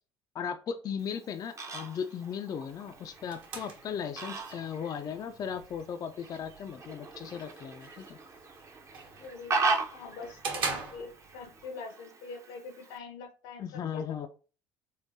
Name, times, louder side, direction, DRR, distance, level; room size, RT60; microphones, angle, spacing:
voice 1, 0.3-8.2 13.6-14.3, left 7 dB, 40° left, 7 dB, 0.3 m, -37 dB
Fowl, 1.0-13.0, right 3 dB, 30° right, 0.6 m, -38 dB
sound 1, 2.7-11.7, right 4 dB, 55° right, 1.1 m, -43 dB
voice 2, 9.2-14.2, left 4 dB, 80° left, 5 dB, 0.7 m, -44 dB
3.6 x 2.2 x 2.6 m, 0.36 s
hypercardioid pair, 75°, 10 cm